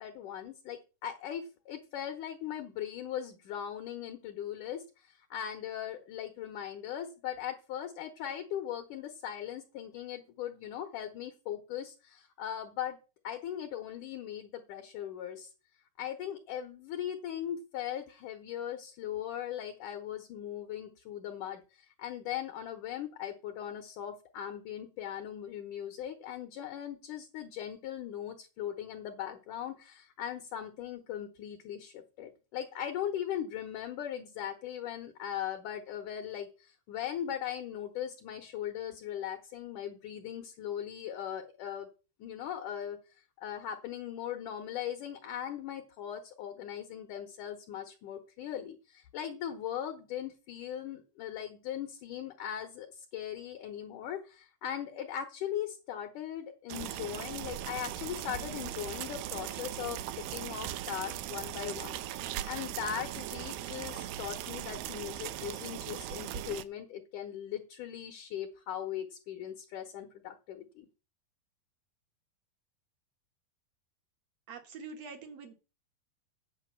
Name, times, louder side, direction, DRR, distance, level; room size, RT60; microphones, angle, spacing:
voice 1, 0.0-13.0 13.2-15.5 16.0-41.9 42.2-43.0 43.4-70.9, left 10 dB, 70° left, 5 dB, 2.0 m, -39 dB
sound 1, 56.7-66.6, right 12 dB, 80° right, 2.3 m, -39 dB
voice 2, 74.5-75.5, right 5 dB, 65° right, 6 dB, 1.7 m, -45 dB
9.2 x 5.1 x 7.4 m, 0.32 s
omnidirectional pair, 4.6 m